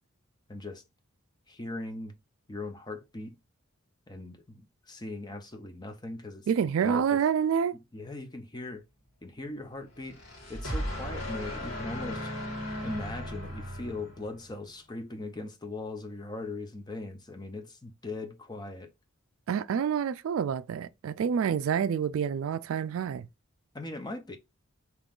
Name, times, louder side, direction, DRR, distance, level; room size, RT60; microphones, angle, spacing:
voice 1, 0.5-0.8 1.5-2.1 2.5-3.3 4.1-6.5 6.8-7.2 7.9-8.8 9.2-10.2 10.5-12.3 12.8-18.9 23.7-24.4, left 2 dB, 20° left, 0.6 m, -39 dB
voice 2, 6.5-7.8 19.5-23.3, right 7 dB, 70° right, 0.3 m, -28 dB
sound 1, 10.0-14.5, equal, 65° left, 1.7 m, -36 dB
5.2 x 3.0 x 2.4 m
head